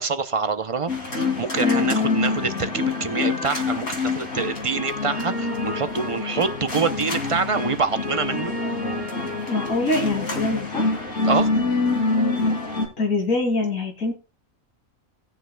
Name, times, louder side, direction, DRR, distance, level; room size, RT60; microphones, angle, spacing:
voice 1, 0.0-8.5 11.2-11.5, right 5 dB, 40° right, 0.5 m, -26 dB
sound 1, 0.9-12.9, left 3 dB, 60° left, 3.0 m, -26 dB
voice 2, 1.6-2.2 9.5-10.9 13.0-14.1, left 2 dB, 80° left, 2.9 m, -24 dB
19.0 x 6.5 x 2.2 m
omnidirectional pair, 1.4 m